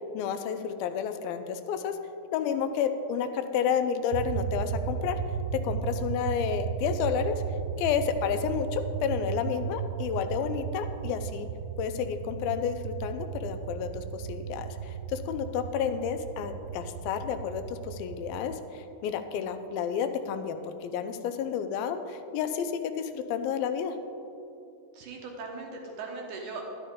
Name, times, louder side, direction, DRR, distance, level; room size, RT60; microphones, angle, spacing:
voice 1, 0.1-2.0 2.3-5.2 5.5-7.4 7.8-11.5 11.8-24.0, left 7 dB, 85° left, 9 dB, 2.4 m, -31 dB
sound 1, 4.1-18.6, right 7 dB, 85° right, 1.9 m, -35 dB
voice 2, 24.9-26.6, right 4 dB, 70° right, 1 dB, 2.2 m, -39 dB
12.0 x 11.0 x 3.6 m, 2.9 s
omnidirectional pair, 4.3 m